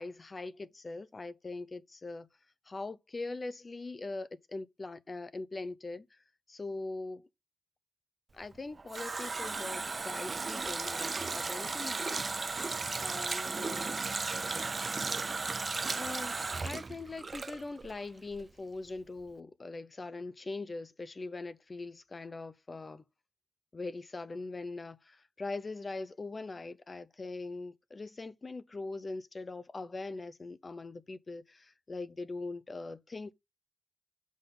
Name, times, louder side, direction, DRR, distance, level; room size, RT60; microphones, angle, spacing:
voice 1, 0.0-2.3 2.7-6.2 6.5-7.3 8.3-12.2 13.0-14.0 15.9-23.0 23.7-33.3, left 3 dB, 35° left, 0.7 m, -41 dB
Water tap faucet, 8.4-18.0 18.3-18.4, right 4 dB, 40° right, 0.5 m, -35 dB
6.4 x 5.3 x 3.9 m
wide cardioid pair, 100°, 0 cm